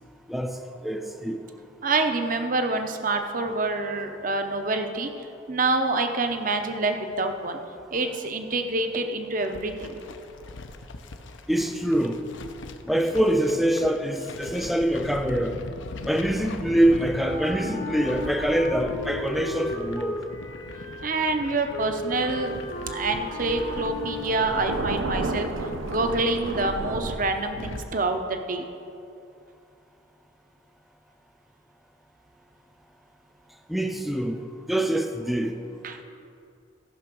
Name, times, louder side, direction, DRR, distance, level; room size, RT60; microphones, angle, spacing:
voice 1, 0.3-1.4 11.5-12.2 12.9-15.6 16.0-20.2 33.7-34.4 34.7-35.6, right 1 dB, ahead, 6 dB, 0.4 m, -24 dB
voice 2, 1.8-7.6 7.9-10.0 21.0-22.5 22.8-25.5 25.9-28.6 35.8-36.0, right 3 dB, 40° right, 6 dB, 0.7 m, -27 dB
sound 1, 9.4-27.9, left 2 dB, 70° left, 0.6 m, -41 dB
Wind instrument woodwind instrument, 17.2-25.5, left 1 dB, 85° left, 2.1 m, -36 dB
Thunder, 22.2-27.2, right 2 dB, 80° right, 0.7 m, -32 dB
14.0 x 5.7 x 6.1 m, 2.6 s
head